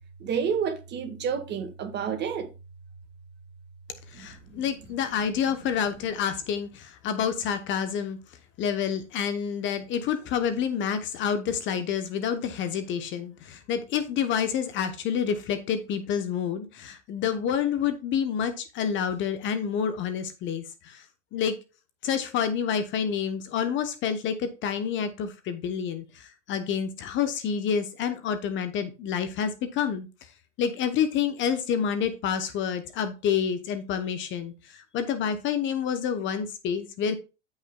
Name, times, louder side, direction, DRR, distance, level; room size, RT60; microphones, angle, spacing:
voice 1, 0.2-2.5 4.1-4.7, right 7 dB, 30° right, 1.8 m, -30 dB
voice 2, 4.1-8.2 8.6-21.1 21.3-21.5 22.0-30.3 30.6-37.2, left 7 dB, 30° left, 1.0 m, -28 dB
14.0 x 5.7 x 2.3 m
hypercardioid pair, 115°, 37 cm